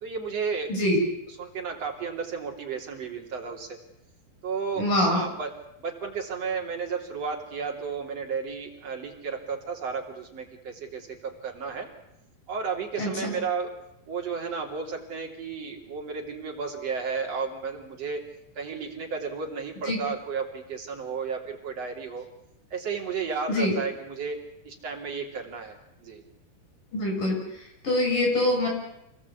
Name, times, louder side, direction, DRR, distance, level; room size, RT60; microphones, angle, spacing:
voice 1, 0.0-0.7 1.3-3.8 4.4-5.5 5.8-11.9 12.5-13.7 14.1-18.2 18.6-22.3 22.7-24.4 24.6-26.2, right 5 dB, 40° right, 1 dB, 3.9 m, -33 dB
voice 2, 4.8-5.2 13.0-13.3 19.9-20.0 23.5-23.8 26.9-27.4 27.8-28.7, left 1 dB, 55° left, 0 dB, 8.6 m, -24 dB
27.0 x 18.5 x 8.5 m, 0.85 s
omnidirectional pair, 4.7 m